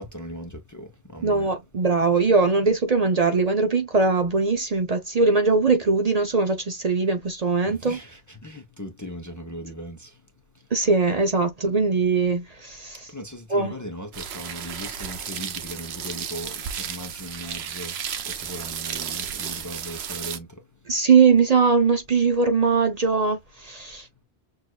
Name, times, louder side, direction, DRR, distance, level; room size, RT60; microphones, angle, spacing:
voice 1, 0.0-1.5 7.6-10.1 13.1-16.5 16.8-17.9 18.3-20.5, equal, 20° left, 0.7 m, -38 dB
voice 2, 1.2-8.0 10.7-13.0 13.5-13.7 20.9-24.1, right 4 dB, 45° right, 0.7 m, -21 dB
sound 1, 14.1-20.4, right 8 dB, 85° right, 0.9 m, -33 dB
6.4 x 2.5 x 2.3 m
omnidirectional pair, 1.0 m